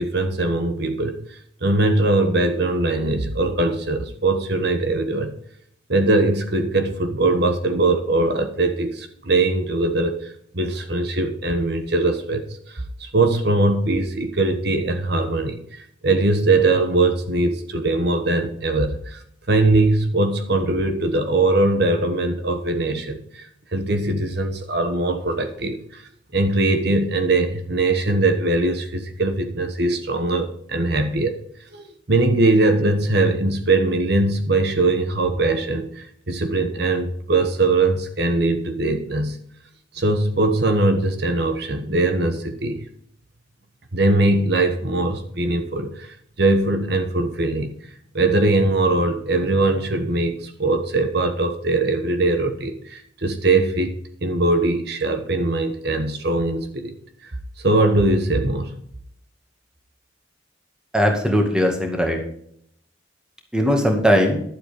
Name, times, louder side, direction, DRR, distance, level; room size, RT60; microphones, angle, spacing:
voice 1, 0.0-5.4 5.9-19.2 19.5-26.0 26.3-31.3 31.7-39.4 39.9-42.8 43.9-47.8 48.1-53.9 54.2-56.9 57.2-57.3 57.6-58.7, right 2 dB, 60° right, 7 dB, 1.3 m, -21 dB
voice 2, 60.9-62.2 63.5-64.4, equal, 5° right, 2 dB, 2.2 m, -19 dB
12.0 x 7.8 x 5.2 m, 0.67 s
head